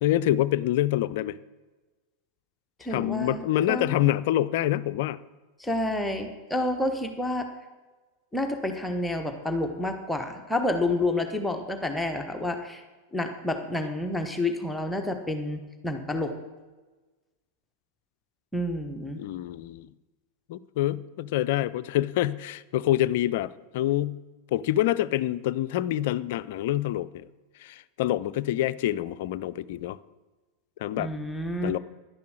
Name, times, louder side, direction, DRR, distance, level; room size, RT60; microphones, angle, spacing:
voice 1, 0.0-1.4 2.9-5.2 19.1-19.9 20.5-24.2 24.5-27.3 27.6-30.0 30.8-31.1 31.6-31.8, left 13 dB, 50° left, 15 dB, 0.5 m, -26 dB
voice 2, 2.8-4.0 5.6-7.5 8.3-12.8 13.1-16.3 18.5-19.2 31.0-31.7, left 1 dB, 5° left, 4 dB, 1.2 m, -29 dB
11.0 x 10.5 x 6.5 m, 1.2 s
figure-of-eight pair, 90°, 0 cm